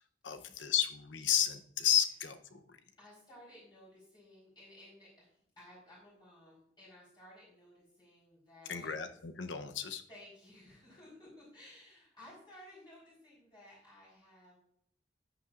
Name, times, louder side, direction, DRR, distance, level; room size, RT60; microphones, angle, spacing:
voice 1, 0.2-2.8 8.7-10.0, left 9 dB, 90° left, 8 dB, 0.9 m, -32 dB
voice 2, 3.0-8.9 10.1-14.6, left 1 dB, 25° left, -7 dB, 4.2 m, -56 dB
13.5 x 9.2 x 2.5 m, 0.68 s
head